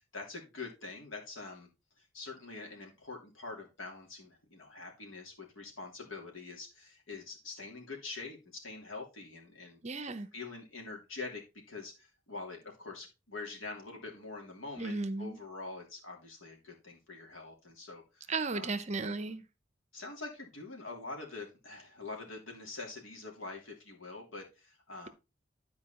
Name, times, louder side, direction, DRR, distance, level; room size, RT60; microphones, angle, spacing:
voice 1, 0.0-1.7 2.0-10.1 10.3-11.4 11.7-18.8 19.9-25.1, left 3 dB, 80° left, 3.0 m, -45 dB
voice 2, 9.8-10.3 14.8-15.4 18.3-19.4, right 3 dB, 35° right, 0.7 m, -35 dB
11.5 x 4.7 x 4.2 m
head